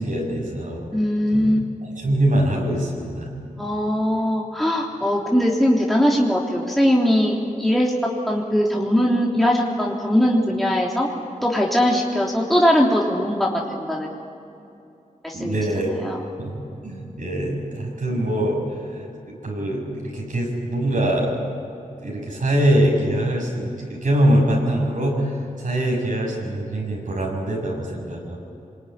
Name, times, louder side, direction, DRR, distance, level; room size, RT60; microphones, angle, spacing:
voice 1, 0.0-0.8 1.3-1.5 1.9-3.3 15.3-15.9 16.4-19.1 19.4-21.3 21.7-28.4, right 1 dB, 70° right, -1 dB, 6.9 m, -23 dB
voice 2, 0.9-1.6 3.6-11.1 11.4-14.1 15.2-15.6 16.0-16.2, equal, ahead, -3 dB, 3.5 m, -20 dB
24.5 x 21.0 x 9.9 m, 2.7 s
cardioid pair, 50°, 14 cm